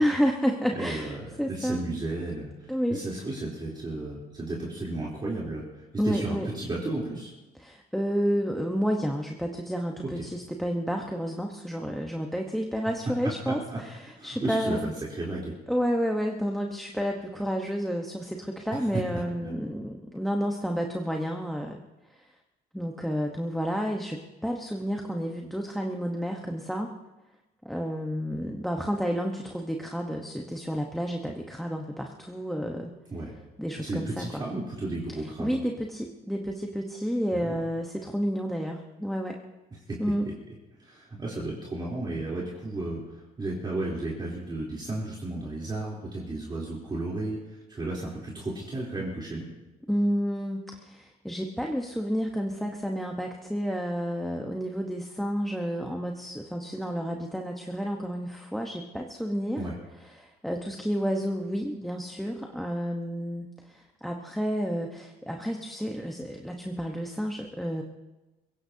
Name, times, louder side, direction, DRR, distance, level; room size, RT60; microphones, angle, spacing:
voice 1, 0.0-1.8 2.7-3.0 6.0-6.5 7.6-14.9 15.7-21.8 22.1-22.3 22.7-26.9 27.6-32.9 33.6-34.4 35.4-39.4 40.0-40.3 49.9-59.6 60.1-67.8, equal, ahead, 2 dB, 1.2 m, -30 dB
voice 2, 0.8-7.3 13.5-13.8 14.2-15.5 19.4-19.5 33.1-33.3 33.8-35.6 37.3-37.6 39.9-40.0 40.8-49.5 59.6-59.7, right 2 dB, 25° right, -5 dB, 3.6 m, -34 dB
23.0 x 16.5 x 2.8 m, 1.1 s
cardioid pair, 110°, 17 cm